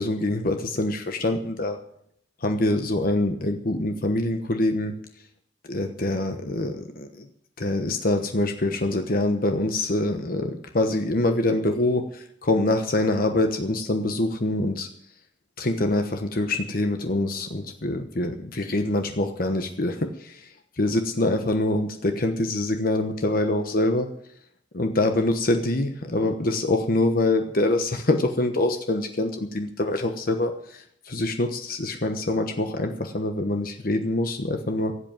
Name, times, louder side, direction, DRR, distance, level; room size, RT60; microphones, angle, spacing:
voice 1, 0.0-1.8 2.4-4.9 5.7-7.3 7.6-14.9 15.6-20.5 20.8-24.1 24.7-34.9, left 2 dB, 50° left, 6 dB, 1.1 m, -25 dB
16.0 x 8.1 x 8.9 m, 0.71 s
head